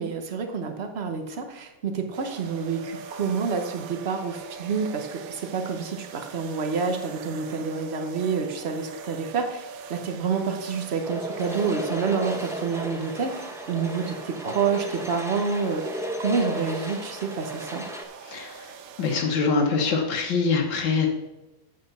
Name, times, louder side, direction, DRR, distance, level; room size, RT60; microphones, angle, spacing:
voice 1, 0.0-13.3 13.7-15.8 16.2-17.8, right 5 dB, 40° right, 5 dB, 1.1 m, -28 dB
sound 1, 2.1-19.2, right 7 dB, 65° right, 0.9 m, -42 dB
sound 2, 11.0-18.0, equal, 5° right, 0.3 m, -35 dB
voice 2, 18.2-18.7 19.0-21.1, left 4 dB, 85° left, 2 dB, 1.8 m, -24 dB
8.9 x 5.2 x 6.9 m, 1.0 s
omnidirectional pair, 2.0 m